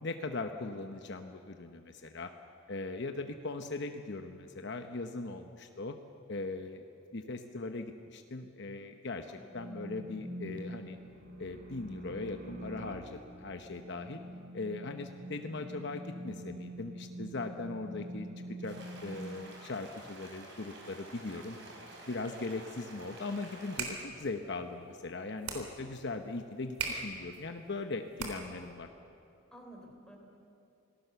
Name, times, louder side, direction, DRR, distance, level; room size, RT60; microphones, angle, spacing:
voice 1, 0.0-2.3 2.7-6.0 6.3-6.8 7.1-11.0 11.4-14.2 14.5-18.3 18.6-21.6 22.1-28.9, left 3 dB, 55° left, 6 dB, 0.9 m, -39 dB
sound 1, 9.5-19.2, equal, 40° right, 4.4 m, -45 dB
sound 2, 18.6-23.8, right 2 dB, 60° right, 4.9 m, -50 dB
sound 3, 23.5-28.7, right 5 dB, 90° right, 3.8 m, -42 dB
voice 2, 29.5-30.2, equal, 5° left, 0 dB, 3.7 m, -52 dB
26.5 x 18.5 x 7.0 m, 2.7 s
head